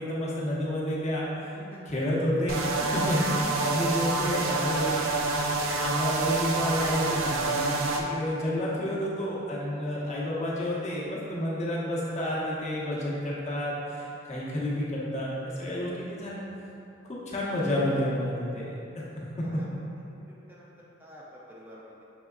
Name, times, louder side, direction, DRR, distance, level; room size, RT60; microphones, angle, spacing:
voice 1, 0.0-5.0 5.8-16.4 17.0-19.0 19.4-19.5, left 1 dB, 35° left, -6 dB, 0.9 m, -30 dB
sound 1, 2.5-8.0, right 3 dB, 85° right, 0.4 m, -27 dB
voice 2, 20.0-22.0, equal, 10° right, -6 dB, 0.4 m, -51 dB
5.9 x 3.4 x 2.3 m, 2.9 s
head